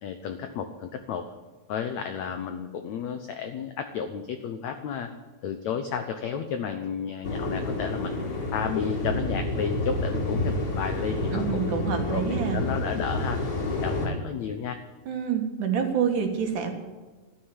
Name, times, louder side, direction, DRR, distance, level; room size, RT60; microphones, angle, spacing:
voice 1, 0.0-1.2 1.7-5.1 5.4-8.1 8.5-11.7 12.1-14.8, left 7 dB, 75° left, 7 dB, 1.6 m, -32 dB
sound 1, 7.2-14.1, left 2 dB, 40° left, 3.4 m, -29 dB
voice 2, 11.3-12.6 15.1-16.7, right 7 dB, 60° right, 4 dB, 3.0 m, -27 dB
13.0 x 10.5 x 9.8 m, 1.3 s
omnidirectional pair, 4.3 m